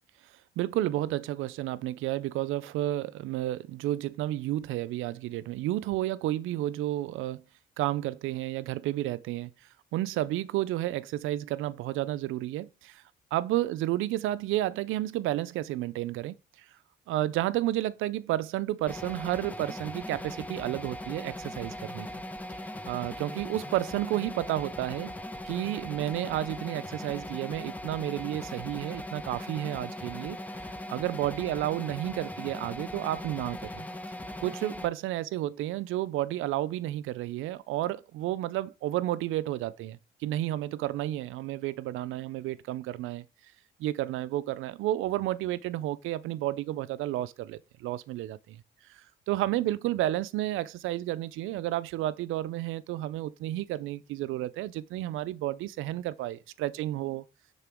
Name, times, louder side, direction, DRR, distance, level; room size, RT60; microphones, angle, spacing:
voice 1, 0.6-7.4 7.8-9.5 9.9-13.0 13.3-16.4 17.1-22.1 22.5-22.6 22.9-25.1 25.4-30.4 30.9-33.9 34.4-43.3 43.8-48.6 49.3-57.2, right 14 dB, 90° right, 0.5 m, -31 dB
sound 1, 18.9-34.9, left 1 dB, 10° left, 0.7 m, -39 dB
9.7 x 3.9 x 3.5 m
cardioid pair, 90°, 20 cm